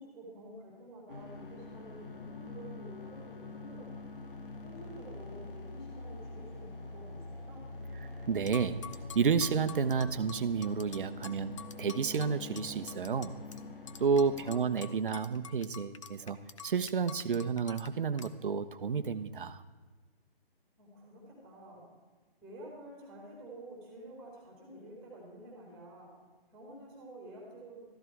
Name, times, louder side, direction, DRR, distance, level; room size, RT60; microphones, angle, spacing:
voice 1, 0.0-3.9 4.6-7.6 14.2-15.0 20.8-21.9 22.4-26.1 26.5-27.8, right 1 dB, ahead, -3 dB, 3.1 m, -50 dB
sound 1, 1.1-14.6, left 3 dB, 60° left, 2.2 m, -45 dB
voice 2, 8.3-8.9 9.1-11.5 11.8-13.4 14.0-19.6, right 5 dB, 55° right, 11 dB, 0.9 m, -31 dB
sound 2, 8.5-13.6 13.9-17.9 18.2-18.3, left 7 dB, 30° left, 0.6 m, -48 dB
14.0 x 13.5 x 4.7 m, 1.3 s
hypercardioid pair, 155°, 30 cm